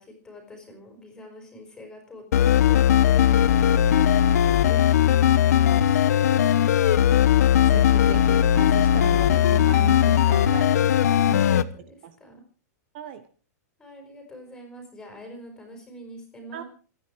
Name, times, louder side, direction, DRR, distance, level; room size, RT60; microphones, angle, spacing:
voice 1, 0.0-6.7 11.1-12.4 13.8-16.6, equal, 5° left, 5.2 m, -45 dB
sound 1, 2.3-11.6, left 10 dB, 65° left, 1.1 m, -19 dB
voice 2, 7.7-10.9 11.2-11.6 12.0-12.2 12.9-13.3 16.5-16.6, right 10 dB, 40° right, 1.3 m, -36 dB
27.0 x 9.9 x 4.7 m
supercardioid pair, 170°, 9 cm